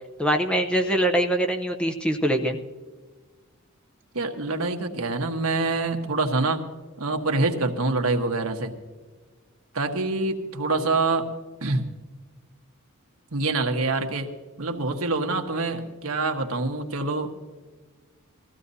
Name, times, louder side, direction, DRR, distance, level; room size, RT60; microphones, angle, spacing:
voice 1, 0.2-2.6, right 1 dB, 5° left, 3 dB, 0.7 m, -23 dB
voice 2, 4.1-6.6 7.0-8.7 9.7-11.3 11.6-11.8 13.3-14.3 14.6-17.3, right 3 dB, 70° right, 4 dB, 1.3 m, -25 dB
21.0 x 15.0 x 2.8 m, 1.4 s
head